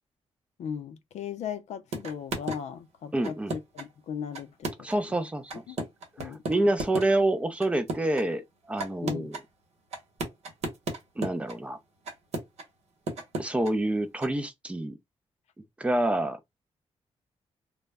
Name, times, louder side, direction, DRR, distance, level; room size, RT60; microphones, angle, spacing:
voice 1, 0.6-4.7 5.7-5.9 6.2-6.4 9.0-9.3, left 8 dB, 75° left, 0.5 m, -37 dB
sound 1, 1.9-2.6 3.2-3.9 4.3-5.1 5.5-7.1 7.6-8.2 8.8-9.4 9.9-11.6 12.0-12.6 13.1-13.7 14.2-14.3, right 2 dB, 70° right, 0.9 m, -34 dB
voice 2, 3.1-3.5 4.8-5.5 6.2-9.3 11.2-11.8 13.4-15.0 15.8-16.4, right 1 dB, 10° right, 0.4 m, -27 dB
2.1 x 2.0 x 3.3 m
wide cardioid pair, 135°, 12 cm